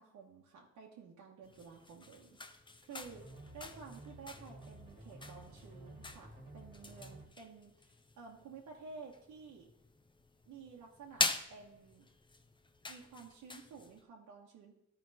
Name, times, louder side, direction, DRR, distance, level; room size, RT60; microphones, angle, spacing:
voice 1, 0.0-2.4 2.9-3.2 3.5-9.7 10.5-12.0 12.9-14.7, right 5 dB, 80° right, -3 dB, 1.2 m, -53 dB
sound 1, 1.4-14.0, left 3 dB, 15° left, 0.6 m, -44 dB
sound 2, 3.0-7.2, right 1 dB, 15° right, 1.7 m, -53 dB
12.5 x 4.6 x 4.1 m, 0.82 s
cardioid pair, 90°, 30 cm